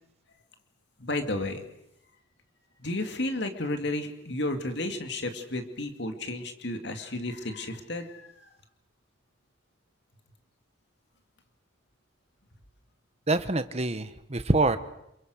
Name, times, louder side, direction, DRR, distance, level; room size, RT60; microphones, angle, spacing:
voice 1, 1.0-1.7 2.8-8.5, left 2 dB, 60° left, 6 dB, 2.5 m, -32 dB
voice 2, 13.3-14.8, right 2 dB, 30° right, 10 dB, 1.2 m, -25 dB
28.5 x 23.0 x 6.5 m, 0.81 s
head